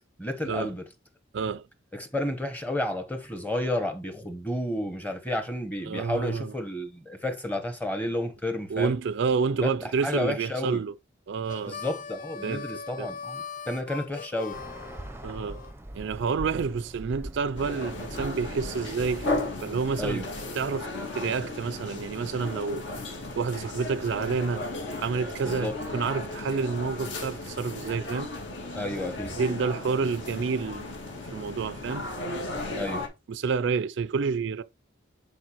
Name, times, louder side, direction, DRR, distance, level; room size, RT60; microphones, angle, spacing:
voice 1, 0.2-0.8 1.9-8.9 9.6-9.7 10.0-10.8 11.6-14.6 20.0-20.3 25.4-25.7 28.7-29.4 32.8-33.1, left 1 dB, 10° left, 1.0 m, -31 dB
voice 2, 1.3-1.7 5.8-6.5 8.7-10.9 11.3-11.8 12.4-12.7 13.0-13.1 15.2-15.6 15.9-19.3 19.6-20.3 20.5-23.0 23.4-28.3 29.4-31.0 31.3-32.1 33.3-34.6, right 5 dB, 65° right, 0.4 m, -29 dB
Harmonica, 11.4-15.7, left 6 dB, 45° left, 0.4 m, -40 dB
Bird, 14.5-20.7, right 1 dB, 10° right, 0.6 m, -42 dB
sound 1, 17.6-33.1, left 2 dB, 65° left, 2.0 m, -35 dB
11.0 x 4.6 x 3.0 m
head